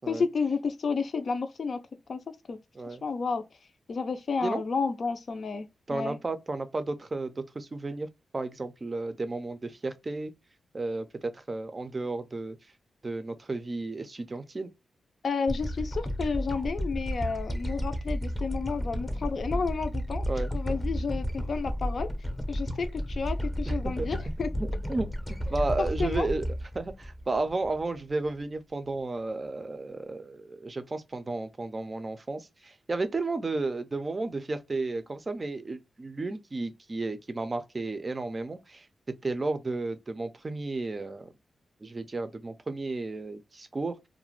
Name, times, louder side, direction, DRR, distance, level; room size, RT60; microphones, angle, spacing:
voice 1, 0.1-1.8 2.1-2.2 2.5-2.6 3.0-3.4 3.9-6.2 15.2-20.3 20.5-22.1 22.5-24.5 26.0-26.3, left 5 dB, 60° left, 0.4 m, -31 dB
voice 2, 5.9-8.1 8.3-10.3 10.7-12.6 13.0-14.7 20.3-20.5 23.7-24.1 24.6-26.5 26.7-38.9 39.2-41.3 41.8-44.0, right 3 dB, 30° right, 0.4 m, -33 dB
sound 1, 15.5-28.0, equal, 5° left, 0.7 m, -32 dB
2.4 x 2.1 x 3.0 m
wide cardioid pair, 100°, 0 cm